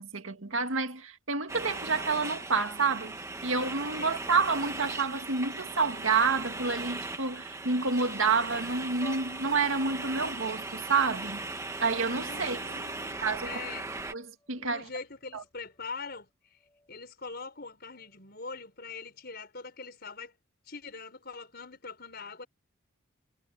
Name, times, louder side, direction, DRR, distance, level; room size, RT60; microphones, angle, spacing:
voice 1, 0.0-11.4 11.8-12.6 13.2-13.6 14.1-14.8 15.3-15.4, right 4 dB, 75° right, 2.1 m, -29 dB
sound 1, 1.5-14.1, right 3 dB, 15° right, 1.1 m, -38 dB
voice 2, 4.0-4.3 12.2-14.0 14.6-16.3 16.9-20.4 20.7-22.5, left 4 dB, 50° left, 5.2 m, -43 dB
sound 2, 9.0-15.5 15.8-15.9 16.6-16.9 17.5-17.6 17.9-18.1, left 1 dB, 15° left, 3.7 m, -55 dB
head